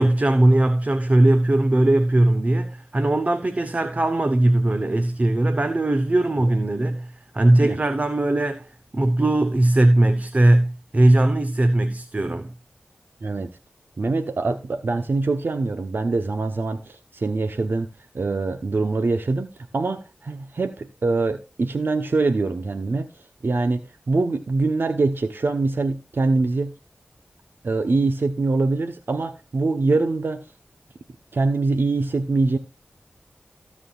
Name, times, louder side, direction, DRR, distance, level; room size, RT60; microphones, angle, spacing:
voice 1, 0.0-12.5, right 1 dB, 40° right, 0.9 m, -19 dB
voice 2, 14.0-17.9 18.1-23.1 23.4-26.7 27.6-30.4 31.3-32.6, right 3 dB, 70° right, 0.8 m, -24 dB
17.0 x 7.3 x 2.4 m
cardioid pair, 45°, 4 cm